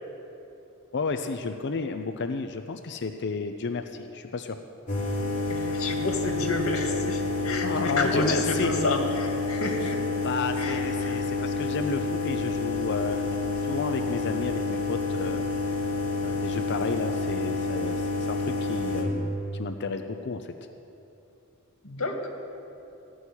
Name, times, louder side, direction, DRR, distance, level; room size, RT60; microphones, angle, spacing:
voice 1, 0.9-4.6 7.6-8.7 9.8-9.9 10.2-15.4 16.2-20.5, left 4 dB, 55° left, 6 dB, 0.6 m, -32 dB
sound 1, 4.9-19.0, left 3 dB, 35° left, 2.6 m, -29 dB
voice 2, 5.5-10.0 10.6-11.2 21.8-22.3, left 2 dB, 70° left, 2 dB, 2.0 m, -30 dB
15.0 x 6.3 x 9.8 m, 2.8 s
head